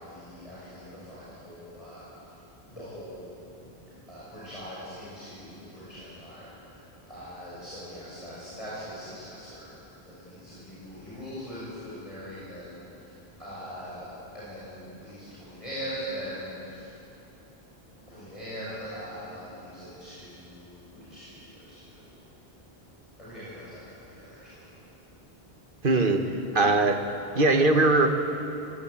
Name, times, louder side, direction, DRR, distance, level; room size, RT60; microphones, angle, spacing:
voice 1, 0.0-2.3 2.7-3.3 3.6-9.8 10.0-14.1 14.3-17.0 18.1-22.3 23.2-24.6, equal, 35° left, -10 dB, 7.0 m, -42 dB
voice 2, 25.8-26.2 26.5-27.0 27.3-28.1, right 2 dB, 60° right, 5 dB, 1.8 m, -20 dB
23.0 x 18.5 x 8.7 m, 2.9 s
omnidirectional pair, 1.0 m